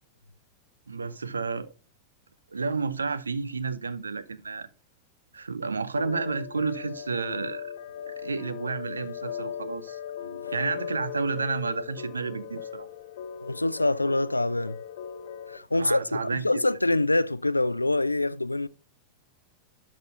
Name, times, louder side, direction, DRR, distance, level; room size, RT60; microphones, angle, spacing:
voice 1, 0.9-1.7 2.5-4.7 5.3-7.7 8.0-10.0 10.5-12.9 15.7-16.4, right 4 dB, 75° right, 0.6 m, -31 dB
sound 1, 6.0-15.6, left 9 dB, 55° left, 1.3 m, -38 dB
voice 2, 10.2-10.5 13.4-14.8 15.5-18.7, left 2 dB, 85° left, 0.3 m, -25 dB
12.0 x 4.1 x 4.0 m
figure-of-eight pair, 90°, 0 cm